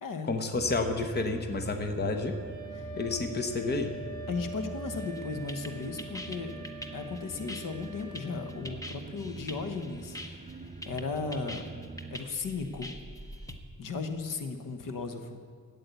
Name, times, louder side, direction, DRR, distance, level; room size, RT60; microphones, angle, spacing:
voice 1, 0.2-2.3 3.0-3.9, left 3 dB, 30° left, 6 dB, 1.1 m, -30 dB
sound 1, 0.5-12.2, right 4 dB, 25° right, 0.6 m, -45 dB
Wind instrument woodwind instrument, 2.1-8.6, right 1 dB, 55° left, 4.7 m, -45 dB
voice 2, 4.3-6.5 6.9-11.6 12.1-12.9 13.8-15.4, left 4 dB, 75° left, 7 dB, 1.3 m, -36 dB
sound 2, 5.0-13.5, left 1 dB, 10° left, 0.9 m, -44 dB
13.5 x 8.6 x 8.2 m, 2.1 s
wide cardioid pair, 165°, 33 cm